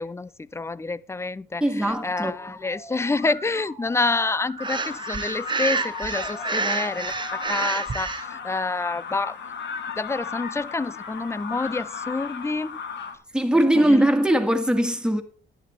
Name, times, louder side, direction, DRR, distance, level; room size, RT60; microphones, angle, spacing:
voice 1, 0.0-9.4 9.9-12.8 13.7-14.1, left 3 dB, 15° left, 0.4 m, -28 dB
voice 2, 1.6-2.3 13.3-15.2, right 1 dB, 5° right, 1.8 m, -20 dB
Musical instrument, 1.9-7.5, left 2 dB, 30° left, 3.3 m, -40 dB
sound 1, 4.6-13.2, left 6 dB, 65° left, 1.6 m, -36 dB
Breathing, 4.6-8.2, right 4 dB, 25° right, 0.9 m, -28 dB
11.0 x 9.8 x 4.5 m
cardioid pair, 90°, 20 cm